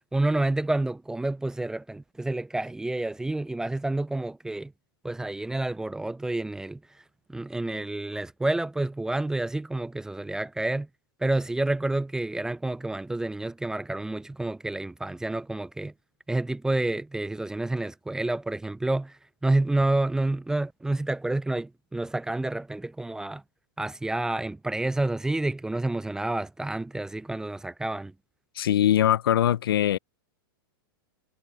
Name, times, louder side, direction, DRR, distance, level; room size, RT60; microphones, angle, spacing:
voice 1, 0.1-4.7 5.0-6.8 7.3-10.9 11.2-15.9 16.3-19.1 19.4-23.4 23.8-28.1, right 2 dB, 5° right, 0.5 m, -29 dB
voice 2, 28.6-30.0, left 11 dB, 85° left, 0.6 m, -22 dB
hypercardioid pair, 130°, 12 cm